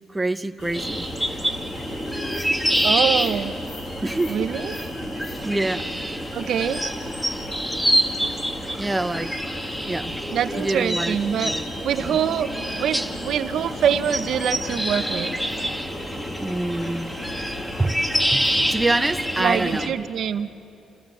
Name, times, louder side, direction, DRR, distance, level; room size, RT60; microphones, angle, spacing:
voice 1, 0.1-1.1 4.0-4.5 5.4-5.9 7.9-8.0 8.8-9.4 9.8-10.1 10.6-11.6 12.0-12.2 16.4-17.1 17.8-18.0 18.3-19.9, right 2 dB, 15° right, 9 dB, 0.7 m, -26 dB
sound 1, 0.6-19.8, left 1 dB, 65° left, 4.5 m, -38 dB
sound 2, 0.7-19.9, equal, 5° left, 1.6 m, -27 dB
voice 2, 2.8-3.5 4.3-4.7 6.3-6.8 10.3-11.5 11.8-12.5 12.8-15.3 19.4-20.5, right 8 dB, 70° right, 12 dB, 0.8 m, -24 dB
29.0 x 15.5 x 7.7 m, 2.7 s
cardioid pair, 90°, 0 cm